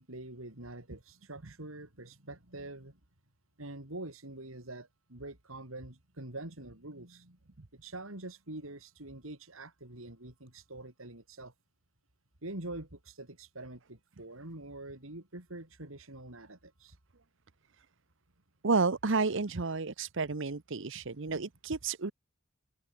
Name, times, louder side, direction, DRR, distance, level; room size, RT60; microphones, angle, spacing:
voice 1, 0.0-3.0 3.6-7.4 7.8-11.5 12.4-17.0, right 2 dB, 90° right, 4.6 m, -45 dB
voice 2, 18.6-22.1, right 4 dB, 65° right, 1.0 m, -31 dB
open air
head